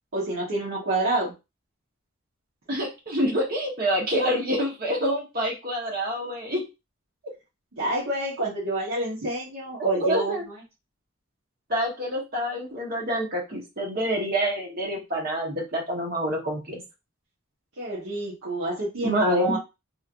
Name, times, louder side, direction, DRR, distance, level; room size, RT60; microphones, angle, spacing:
voice 1, 0.1-1.3 7.8-10.5 17.8-19.6, right 1 dB, 85° right, -8 dB, 1.1 m, -28 dB
voice 2, 2.7-6.6 9.8-10.4 11.7-16.8 19.0-19.6, equal, 45° right, -1 dB, 1.2 m, -27 dB
3.1 x 2.9 x 2.5 m, 0.26 s
head